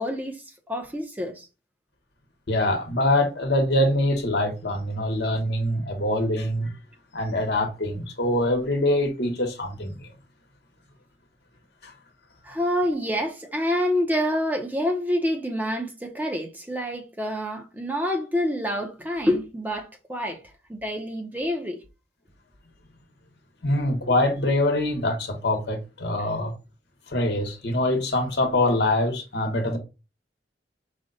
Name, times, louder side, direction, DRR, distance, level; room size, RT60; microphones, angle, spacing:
voice 1, 0.0-1.5 12.4-20.4 20.7-21.8, equal, 10° right, 0.7 m, -27 dB
voice 2, 2.5-6.7 7.1-9.9 11.8-11.9 23.6-26.6 27.1-29.8, left 1 dB, 65° left, 1.1 m, -24 dB
5.0 x 2.2 x 3.9 m
head